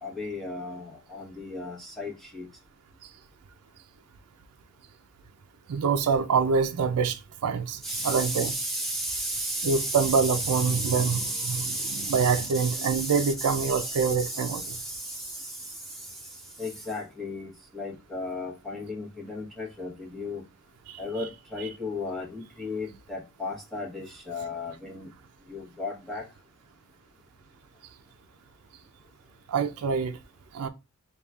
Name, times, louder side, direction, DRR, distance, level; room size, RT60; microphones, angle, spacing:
voice 1, 0.0-2.5 7.8-20.4 21.0-25.1 25.5-26.2, equal, ahead, 1.0 m, -34 dB
voice 2, 5.7-8.5 9.6-14.6 21.2-21.3 21.6-21.7 29.5-30.2 30.5-30.7, right 5 dB, 85° right, 0.4 m, -26 dB
6.7 x 2.3 x 2.3 m
head